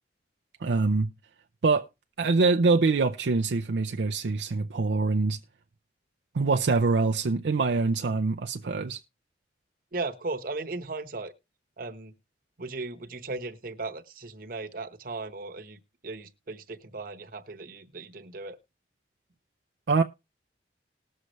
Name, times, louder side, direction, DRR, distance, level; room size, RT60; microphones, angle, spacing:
voice 1, 0.6-1.1 1.6-1.9 2.2-5.4 6.3-9.0 19.9-20.0, right 3 dB, 75° right, 0.5 m, -24 dB
voice 2, 9.9-11.3 11.8-12.1 12.6-18.6, right 3 dB, 50° right, 1.0 m, -37 dB
19.5 x 6.5 x 3.1 m
head